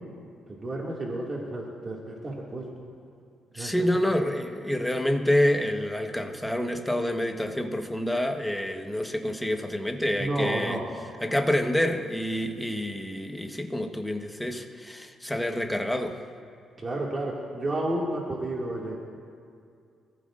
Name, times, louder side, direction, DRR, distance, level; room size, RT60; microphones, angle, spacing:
voice 1, 0.5-2.7 3.5-3.7 10.1-10.9 16.8-19.0, right 1 dB, 30° right, -3 dB, 2.3 m, -31 dB
voice 2, 3.5-10.8 11.2-16.2, left 1 dB, 5° left, 4 dB, 1.2 m, -27 dB
26.0 x 15.0 x 2.6 m, 2.3 s
cardioid pair, 90°, 0 cm